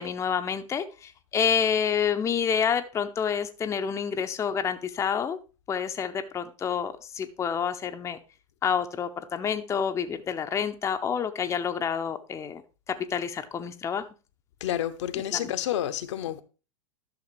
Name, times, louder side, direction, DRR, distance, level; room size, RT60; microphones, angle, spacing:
voice 1, 0.0-5.4 5.7-8.2 8.6-12.6 13.1-14.0 15.3-15.4, left 7 dB, 15° left, 0.6 m, -28 dB
voice 2, 14.6-16.4, left 11 dB, 60° left, 0.8 m, -29 dB
12.0 x 6.4 x 3.2 m
figure-of-eight pair, 95°, 17 cm